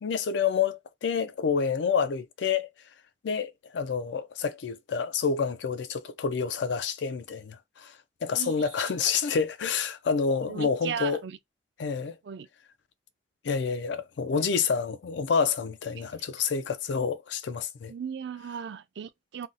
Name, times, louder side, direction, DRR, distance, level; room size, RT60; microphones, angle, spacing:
voice 1, 0.0-2.7 3.2-7.9 8.2-11.2 11.8-12.2 13.4-17.9, left 6 dB, 85° left, 0.4 m, -28 dB
voice 2, 8.3-8.9 10.4-11.4 12.2-12.5 16.0-16.1 17.9-19.5, right 7 dB, 75° right, 0.4 m, -37 dB
2.7 x 2.0 x 3.7 m
head